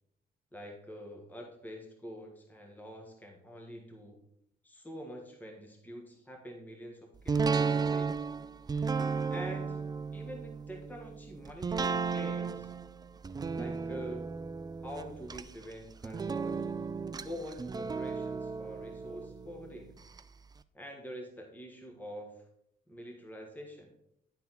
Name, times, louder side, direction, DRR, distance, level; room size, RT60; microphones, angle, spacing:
voice 1, 0.5-4.2 4.6-8.1 9.3-9.8 10.1-12.7 13.5-14.3 14.8-16.6 17.2-19.9 20.7-22.3 22.9-23.9, equal, 10° left, 1 dB, 1.4 m, -45 dB
sound 1, 7.3-20.2 20.6-20.7, right 5 dB, 20° right, 0.4 m, -34 dB
10.5 x 4.2 x 4.1 m, 0.76 s
cardioid pair, 90°, 20 cm